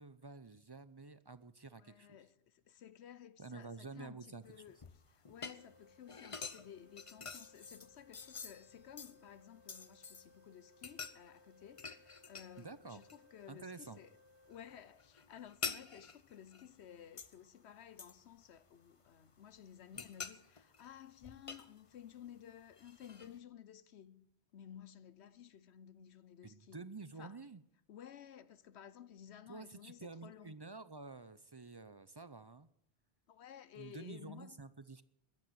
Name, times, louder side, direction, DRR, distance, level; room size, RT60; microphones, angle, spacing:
voice 1, 0.0-2.2 3.4-4.4 12.6-13.0 13.5-14.0 26.4-27.6 29.5-32.7 33.8-35.0, right 3 dB, 30° right, 0.5 m, -50 dB
voice 2, 1.8-4.8 5.1-14.2 14.5-24.3 24.5-26.9 27.2-27.4 27.9-30.6 33.3-34.6, left 9 dB, 80° left, 1.0 m, -55 dB
sound 1, 4.5-10.4 10.8-12.7 13.0-13.8 14.1-17.5 18.0-19.1 19.5-22.3 22.7-23.4, left 5 dB, 35° left, 0.8 m, -48 dB
sound 2, 5.4-15.1, left 2 dB, 55° right, 1.7 m, -66 dB
14.5 x 10.5 x 7.7 m
omnidirectional pair, 1.1 m